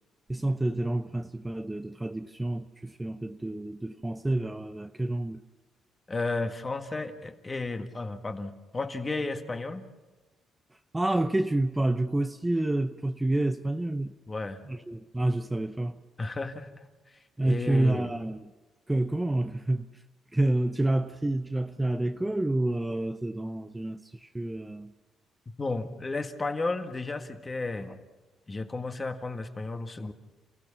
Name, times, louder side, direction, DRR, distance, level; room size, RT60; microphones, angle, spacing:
voice 1, 0.3-5.4 10.9-14.1 14.7-16.0 17.4-18.5 18.9-19.9 20.3-24.9, right 2 dB, 10° right, 0.7 m, -28 dB
voice 2, 6.1-9.8 14.3-14.6 16.2-16.7 17.4-18.1 25.6-28.0 28.5-30.1, left 3 dB, 25° left, 1.8 m, -33 dB
28.5 x 15.5 x 7.2 m
cardioid pair, 90°, 0 cm